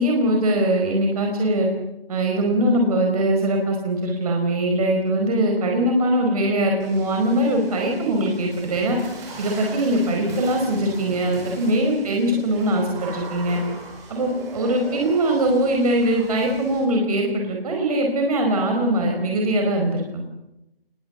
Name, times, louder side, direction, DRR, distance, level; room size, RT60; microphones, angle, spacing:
voice 1, 0.0-1.7 2.1-9.0 9.4-13.6 14.1-20.0, right 1 dB, 40° right, 1 dB, 4.7 m, -21 dB
Water / Splash splatter, 6.8-16.8, right 2 dB, 10° right, 5.1 m, -40 dB
26.5 x 21.0 x 7.1 m, 0.92 s
figure-of-eight pair, 160°, 30 cm